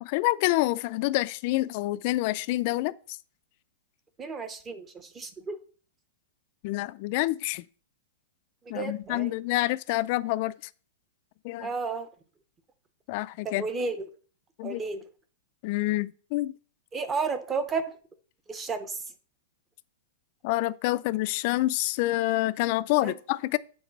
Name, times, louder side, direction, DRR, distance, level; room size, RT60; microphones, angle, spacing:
voice 1, 0.0-2.9 6.6-7.6 8.7-10.5 11.4-11.7 13.1-13.7 14.6-14.8 15.6-16.5 20.4-23.6, left 18 dB, 35° left, 0.4 m, -27 dB
voice 2, 4.2-5.6 8.7-9.3 11.6-12.1 13.6-14.1 14.6-15.0 16.9-17.9 18.5-19.0 23.0-23.1, right 4 dB, 15° right, 0.7 m, -32 dB
8.1 x 4.7 x 7.2 m
supercardioid pair, 175°, 0 cm